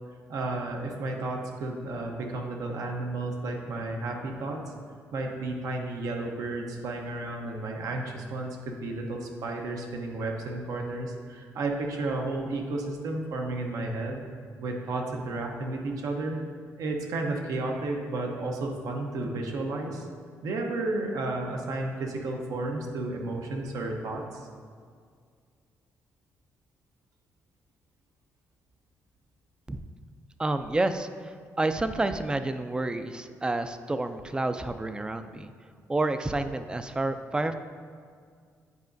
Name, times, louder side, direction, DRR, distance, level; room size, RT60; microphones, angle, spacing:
voice 1, 0.3-4.6 5.1-14.2 14.6-16.4 16.8-20.1 20.4-24.5, right 2 dB, 75° right, 2 dB, 0.9 m, -32 dB
voice 2, 30.4-31.3 31.6-35.5 35.9-37.5, right 2 dB, 15° right, 9 dB, 0.4 m, -29 dB
9.5 x 4.9 x 2.6 m, 2.1 s
cardioid pair, 90°, 6 cm